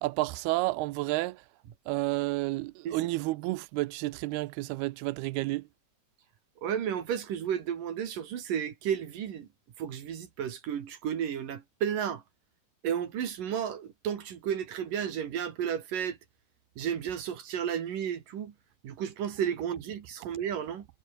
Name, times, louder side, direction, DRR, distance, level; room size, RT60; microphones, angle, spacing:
voice 1, 0.0-1.4 1.9-5.6, right 20 dB, 80° right, 2.4 m, -30 dB
voice 2, 6.6-9.5 9.8-12.2 12.8-16.2 16.8-18.5 18.8-20.9, right 9 dB, 55° right, 3.2 m, -33 dB
omnidirectional pair, 5.1 m